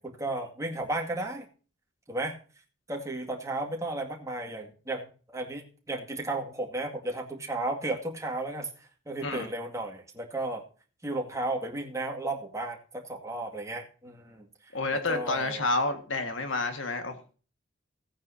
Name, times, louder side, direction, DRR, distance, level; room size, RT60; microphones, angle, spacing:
voice 1, 0.0-1.5 2.1-2.4 2.9-8.7 9.1-10.6 11.0-14.5 14.9-15.7, right 2 dB, 15° right, 0 dB, 2.2 m, -34 dB
voice 2, 14.7-17.3, left 3 dB, 80° left, 6 dB, 1.8 m, -29 dB
16.5 x 9.3 x 2.8 m, 0.38 s
head